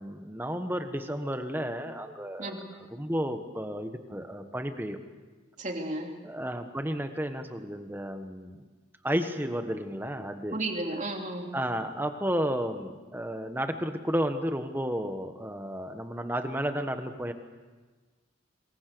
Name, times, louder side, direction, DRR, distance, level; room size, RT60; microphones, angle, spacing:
voice 1, 0.0-5.0 6.2-8.6 9.0-10.6 11.5-17.3, equal, 10° right, 7 dB, 1.4 m, -32 dB
voice 2, 5.6-6.1 10.5-11.5, right 2 dB, 35° right, 2 dB, 3.0 m, -33 dB
26.5 x 22.0 x 6.9 m, 1.3 s
head